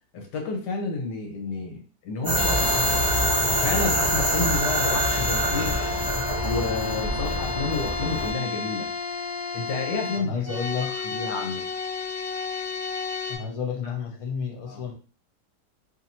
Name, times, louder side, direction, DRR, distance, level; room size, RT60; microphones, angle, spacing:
voice 1, 0.1-3.1 3.6-5.8 6.4-8.9 9.5-10.3 11.0-11.7 13.8-13.9 14.7-14.8, left 3 dB, 75° left, 1 dB, 1.6 m, -30 dB
sound 1, 2.2-8.3, right 1 dB, 25° right, 0.4 m, -25 dB
sound 2, 2.3-13.4, left 4 dB, 35° left, 1.3 m, -31 dB
voice 2, 10.2-10.9 13.3-14.9, left 6 dB, 60° left, 1 dB, 0.3 m, -31 dB
3.1 x 2.8 x 4.1 m, 0.39 s
omnidirectional pair, 1.8 m